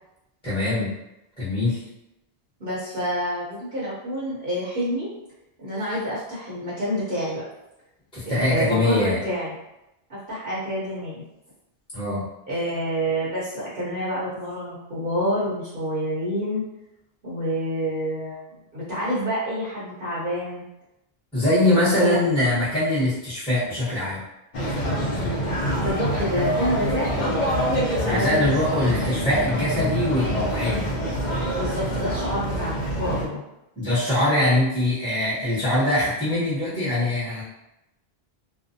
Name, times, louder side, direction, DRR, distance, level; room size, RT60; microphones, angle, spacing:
voice 1, 0.4-0.9 1.4-1.8 8.1-9.2 11.9-12.3 21.3-24.2 28.0-30.9 33.8-37.4, left 1 dB, 5° left, -11 dB, 0.9 m, -22 dB
voice 2, 2.6-5.1 5.6-7.4 8.2-9.5 10.1-11.2 12.5-16.6 17.2-18.4 18.7-20.6 21.5-22.3 25.7-27.6 28.0-29.1 31.5-33.4, equal, 60° right, -9 dB, 0.9 m, -28 dB
sound 1, 24.5-33.3, equal, 55° left, 0.6 m, -26 dB
2.5 x 2.1 x 2.6 m, 0.90 s
omnidirectional pair, 1.0 m